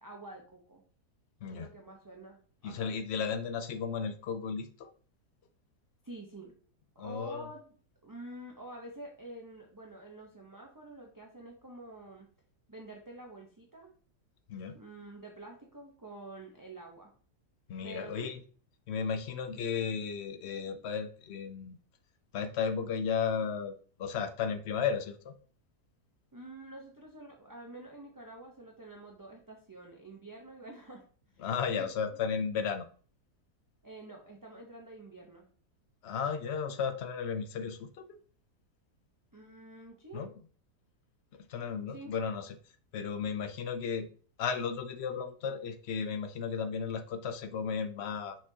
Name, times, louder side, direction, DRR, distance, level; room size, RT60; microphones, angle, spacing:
voice 1, 0.0-0.8 1.5-3.3 6.0-6.5 6.9-7.6 8.0-12.3 12.7-13.9 14.7-17.1 17.8-18.4 26.3-31.0 31.3-31.5 31.8-31.9 33.8-35.5 39.3-40.3 41.9-42.1, right 2 dB, 20° right, 0 dB, 0.6 m, -48 dB
voice 2, 2.6-4.9 7.0-7.5 14.5-14.8 17.7-18.4 18.9-21.8 22.3-25.3 31.4-32.8 36.0-38.2 40.1-40.3 41.3-42.6 42.9-44.1 44.4-48.4, left 6 dB, 65° left, 9 dB, 0.7 m, -34 dB
6.0 x 5.9 x 2.8 m, 0.43 s
omnidirectional pair, 1.7 m